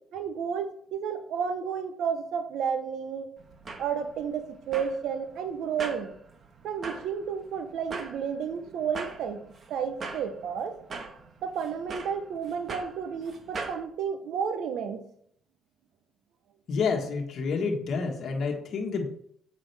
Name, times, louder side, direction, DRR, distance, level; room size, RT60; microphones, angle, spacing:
voice 1, 0.1-3.3 3.8-6.2 6.6-9.4 9.7-10.7 11.4-15.0, right 7 dB, 80° right, 9 dB, 0.7 m, -31 dB
sound 1, 3.4-13.8, right 4 dB, 45° right, 1.2 m, -42 dB
voice 2, 16.7-19.1, left 4 dB, 65° left, 1 dB, 1.4 m, -29 dB
7.4 x 5.6 x 3.4 m, 0.66 s
cardioid pair, 90°, 0 cm